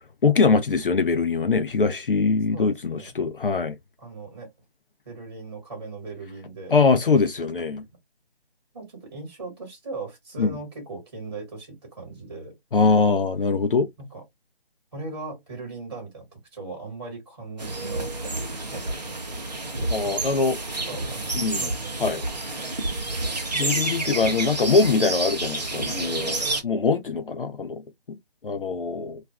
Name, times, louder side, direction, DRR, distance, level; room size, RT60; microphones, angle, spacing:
voice 1, 0.2-3.8 6.7-7.8 10.4-10.5 12.7-13.9 19.9-20.6 21.3-21.7 22.0-22.2 23.5-26.4 26.6-27.8 28.4-29.2, left 4 dB, 60° left, 0.4 m, -22 dB
voice 2, 2.5-3.1 4.0-4.5 5.0-6.7 8.7-12.5 14.0-14.2 14.9-18.3 18.7-19.2 20.9-22.1, right 3 dB, 25° right, 1.2 m, -38 dB
sound 1, 17.6-26.6, right 2 dB, 45° right, 0.6 m, -29 dB
2.4 x 2.2 x 3.3 m
figure-of-eight pair, 170°, 31 cm